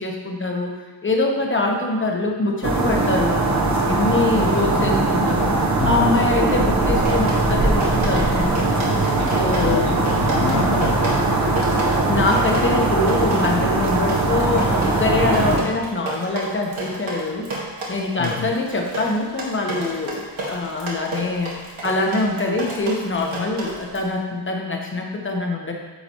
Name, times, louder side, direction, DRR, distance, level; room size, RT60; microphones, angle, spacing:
voice 1, 0.0-3.4 3.9-5.5 5.8-9.0 9.3-9.9 12.1-17.5 17.9-21.5 21.8-25.7, left 2 dB, 25° left, 1 dB, 1.0 m, -24 dB
sound 1, 2.6-15.6, right 2 dB, 35° right, 1.0 m, -20 dB
voice 2, 5.8-6.3 9.6-11.2 18.2-18.5, left 7 dB, 55° left, 4 dB, 0.5 m, -28 dB
Drip, 7.0-24.0, right 2 dB, 80° right, 1.8 m, -32 dB
9.7 x 6.8 x 3.0 m, 1.4 s
wide cardioid pair, 180°, 47 cm